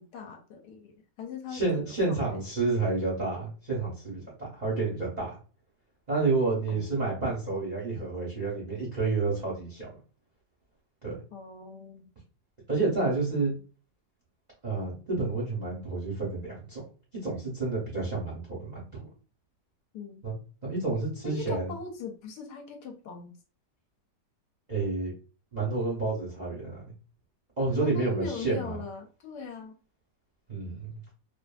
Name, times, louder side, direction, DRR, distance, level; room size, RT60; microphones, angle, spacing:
voice 1, 0.0-2.4 6.7-6.9 11.3-12.1 19.9-20.2 21.2-23.3 27.7-29.8, left 4 dB, 75° left, 3 dB, 1.1 m, -40 dB
voice 2, 1.5-5.4 6.1-9.9 11.0-11.2 12.7-13.6 14.6-16.8 17.1-19.1 20.2-20.4 20.6-21.7 24.7-25.1 25.5-26.8 27.6-28.8 30.5-31.0, right 3 dB, 40° right, -5 dB, 0.6 m, -30 dB
2.5 x 2.5 x 2.2 m, 0.38 s
omnidirectional pair, 1.9 m